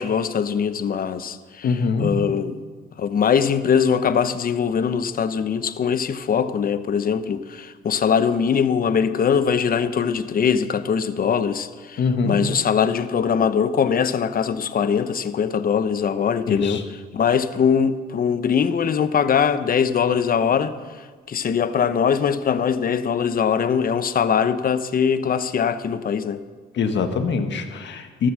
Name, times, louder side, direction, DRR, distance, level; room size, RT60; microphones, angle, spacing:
voice 1, 0.0-2.6 3.0-16.8 17.1-26.4, left 7 dB, 45° left, 0.9 m, -22 dB
voice 2, 1.6-2.1 12.0-12.4 16.5-16.8 26.7-28.3, left 5 dB, 65° left, 1.7 m, -23 dB
13.5 x 13.5 x 6.3 m
cardioid pair, 90°, 20 cm